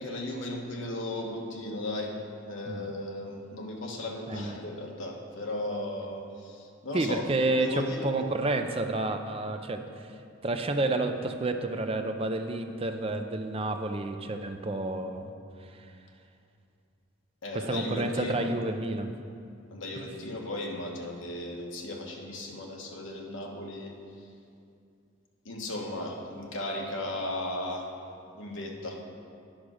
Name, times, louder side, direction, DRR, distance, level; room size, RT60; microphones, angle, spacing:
voice 1, 0.0-7.2 7.6-8.1 17.4-18.5 19.7-23.9 25.4-27.9 28.4-29.0, left 1 dB, 70° left, 0 dB, 1.2 m, -36 dB
voice 2, 6.9-15.3 15.7-15.9 17.5-19.1 20.0-20.1, right 2 dB, 30° right, 6 dB, 0.5 m, -30 dB
10.5 x 5.0 x 6.3 m, 2.4 s
head